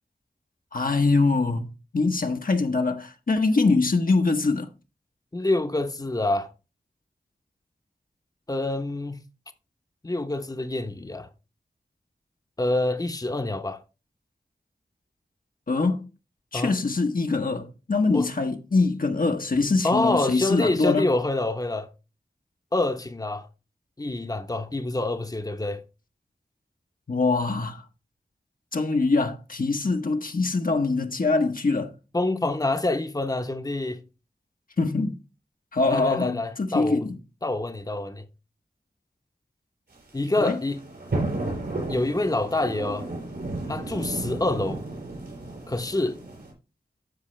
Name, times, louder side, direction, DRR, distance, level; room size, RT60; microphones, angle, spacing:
voice 1, 0.7-4.7 15.7-16.1 16.5-21.1 27.1-27.8 28.7-31.9 34.8-35.2 35.7-37.1 40.4-40.6, left 3 dB, 55° left, 1.0 m, -23 dB
voice 2, 5.3-6.5 8.5-9.2 10.0-11.3 12.6-13.8 16.5-16.8 18.1-18.3 19.8-21.9 22.7-23.5 24.0-25.8 32.1-34.0 35.9-37.0 37.4-38.2 40.1-40.8 41.9-43.1 43.7-44.8 45.7-46.2, left 2 dB, 20° left, 0.9 m, -26 dB
sound 1, 39.9-46.5, right 2 dB, 90° right, 5.4 m, -33 dB
13.0 x 4.8 x 3.2 m
cardioid pair, 40°, 17 cm